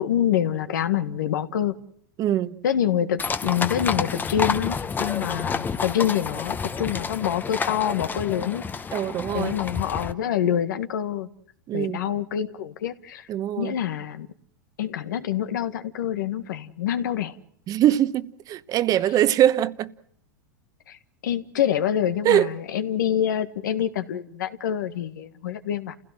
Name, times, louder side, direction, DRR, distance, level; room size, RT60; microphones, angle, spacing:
voice 1, 0.0-1.7 2.6-8.6 9.3-11.3 11.7-13.2 13.6-14.3 14.8-17.3 20.9-21.0 21.2-25.9, left 10 dB, 80° left, 1.8 m, -26 dB
voice 2, 2.2-2.6 8.9-9.5 11.7-12.1 13.3-13.8 17.7-19.9 22.2-22.5, right 12 dB, 35° right, 1.1 m, -22 dB
sound 1, 3.2-10.1, left 5 dB, 20° left, 1.1 m, -29 dB
29.5 x 16.5 x 7.7 m
hypercardioid pair, 115°, 10 cm